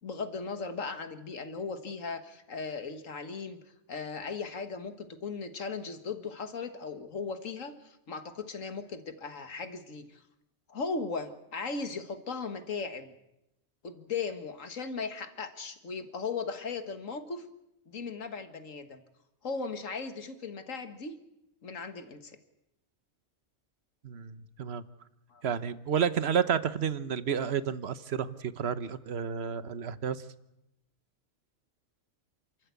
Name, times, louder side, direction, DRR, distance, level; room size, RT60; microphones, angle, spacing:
voice 1, 0.0-3.6 3.9-10.2 10.7-13.1 13.8-17.5 17.9-19.0 19.4-21.1 21.6-22.4 25.3-25.4, left 4 dB, 85° left, 9 dB, 2.0 m, -37 dB
voice 2, 24.0-24.8 25.4-30.2, right 7 dB, 55° right, 14 dB, 1.2 m, -31 dB
29.0 x 13.5 x 8.3 m, 0.87 s
omnidirectional pair, 1.3 m